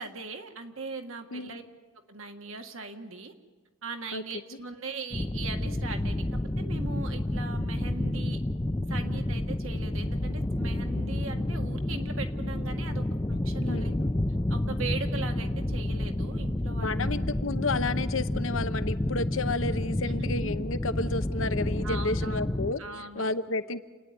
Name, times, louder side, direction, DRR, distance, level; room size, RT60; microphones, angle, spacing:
voice 1, 0.0-1.6 2.1-3.3 3.8-8.4 8.9-13.9 14.5-17.1 20.0-20.5 21.8-22.4 22.8-23.4, right 4 dB, 70° right, 5 dB, 1.8 m, -40 dB
sound 1, 5.1-22.7, left 1 dB, 15° left, 0.6 m, -30 dB
voice 2, 13.6-14.0 16.8-22.8 23.2-23.8, left 3 dB, 65° left, 11 dB, 0.9 m, -31 dB
28.5 x 9.7 x 9.7 m, 1.4 s
head